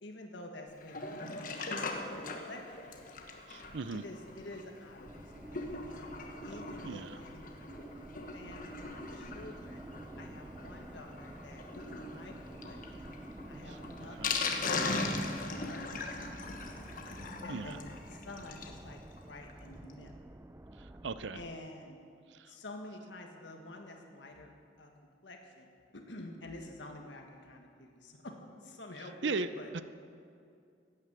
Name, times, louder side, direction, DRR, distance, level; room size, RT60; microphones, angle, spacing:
voice 1, 0.0-2.1 2.5-3.0 3.9-5.0 5.3-8.1 8.3-9.8 10.2-13.1 13.5-16.6 17.4-20.1 21.3-22.0 22.5-24.5 24.8-24.9 25.2-28.3 28.6-29.7, left 2 dB, 80° left, 2 dB, 1.7 m, -49 dB
Sink (filling or washing), 0.8-18.8 19.2-19.3 19.4-19.5 19.9-20.0, left 3 dB, 50° left, 1.3 m, -40 dB
voice 2, 3.5-4.0 6.8-7.1 13.7-13.8 14.2-14.3 17.5-17.8 20.8-21.4 22.3-22.5 29.2-29.5 29.7-29.8, right 4 dB, 80° right, 13 dB, 0.6 m, -37 dB
sound 1, 5.0-21.6, right 1 dB, 15° right, 0.4 m, -49 dB
14.5 x 9.4 x 8.2 m, 2.4 s
head